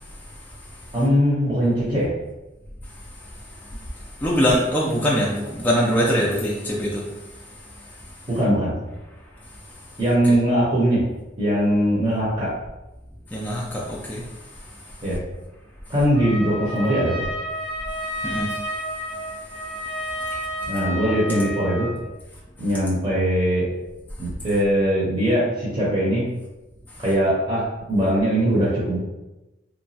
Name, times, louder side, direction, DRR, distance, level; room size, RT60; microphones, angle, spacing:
voice 1, 0.9-2.1 8.3-8.8 10.0-11.0 11.4-12.5 15.0-15.2 15.9-17.2 20.7-21.9 22.6-23.7 24.2-26.3 27.0-29.0, equal, 30° right, -8 dB, 0.7 m, -21 dB
voice 2, 4.2-7.0 10.3-10.4 13.3-14.2 18.2-18.5, equal, 10° left, -5 dB, 0.3 m, -22 dB
Trumpet, 16.1-22.0, equal, 75° right, 1.0 m, -31 dB
2.9 x 2.2 x 2.7 m, 1.0 s
head